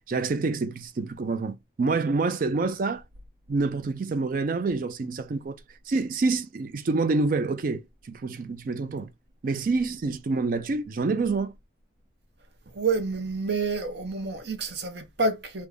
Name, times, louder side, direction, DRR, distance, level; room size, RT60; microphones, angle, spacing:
voice 1, 0.1-3.0 3.5-5.6 5.9-9.1 9.4-11.5, right 3 dB, 45° right, 0.3 m, -27 dB
voice 2, 12.8-15.7, right 3 dB, 60° right, 0.7 m, -28 dB
3.3 x 2.0 x 3.6 m
head